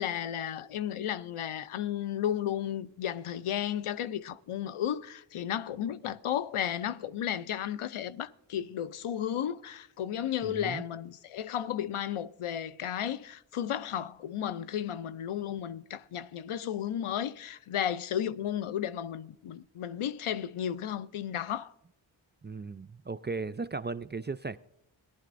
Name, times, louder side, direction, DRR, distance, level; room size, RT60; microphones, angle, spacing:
voice 1, 0.0-21.7, left 10 dB, 85° left, 0.6 m, -33 dB
voice 2, 10.4-10.8 22.4-24.6, right 4 dB, 25° right, 0.3 m, -36 dB
18.0 x 11.0 x 2.5 m
wide cardioid pair, 60°, 49 cm